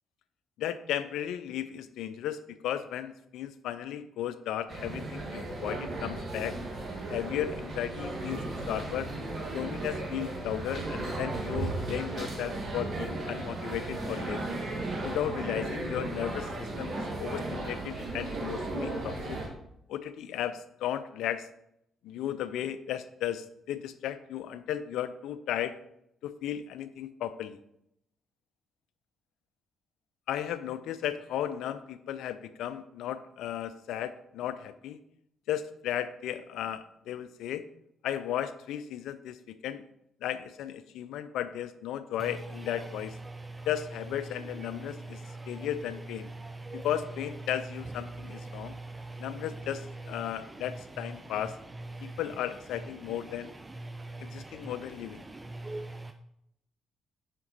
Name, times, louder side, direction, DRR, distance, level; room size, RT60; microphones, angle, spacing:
voice 1, 0.6-6.6 7.1-9.1 9.5-14.6 15.0-19.4 19.9-21.5 22.0-25.8 26.2-27.6 30.3-35.0 35.5-37.6 38.0-39.8 40.2-43.2 43.7-45.2 45.5-46.3 46.7-48.8 49.2-51.6 52.0-53.5 54.2-55.2, left 11 dB, 70° left, 0.4 m, -35 dB
sound 1, 4.7-19.5, right 2 dB, 50° right, 1.4 m, -35 dB
voice 2, 48.5-49.2 52.0-52.1 54.0-54.4 55.6-56.1, right 2 dB, 20° right, 0.4 m, -41 dB
5.8 x 5.1 x 4.0 m
hypercardioid pair, 45°, 0 cm